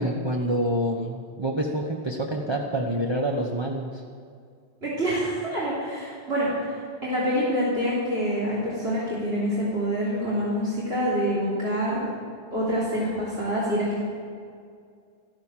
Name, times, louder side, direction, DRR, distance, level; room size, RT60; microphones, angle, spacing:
voice 1, 0.0-4.0, right 1 dB, 25° right, 0 dB, 1.1 m, -27 dB
voice 2, 4.8-12.1 12.5-14.0, equal, 75° right, -8 dB, 3.7 m, -26 dB
14.0 x 12.5 x 7.4 m, 2.2 s
omnidirectional pair, 1.1 m